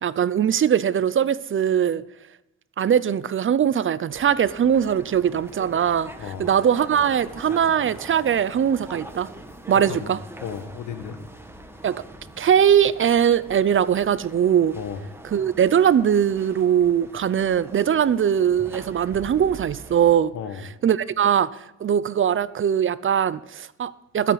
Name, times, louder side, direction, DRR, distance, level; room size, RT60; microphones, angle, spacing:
voice 1, 0.0-2.0 2.8-6.1 6.4-9.3 9.7-10.2 11.8-12.0 12.4-14.8 15.3-20.3 20.8-21.5 21.8-24.3, right 8 dB, 40° right, 0.6 m, -21 dB
sound 1, 4.1-20.2, right 1 dB, 10° right, 1.8 m, -43 dB
voice 2, 6.2-6.6 6.9-7.0 9.9-10.1 10.4-11.2 14.7-15.1 20.3-20.7, left 7 dB, 75° left, 1.6 m, -34 dB
21.0 x 8.4 x 4.1 m
cardioid pair, 90°, 30 cm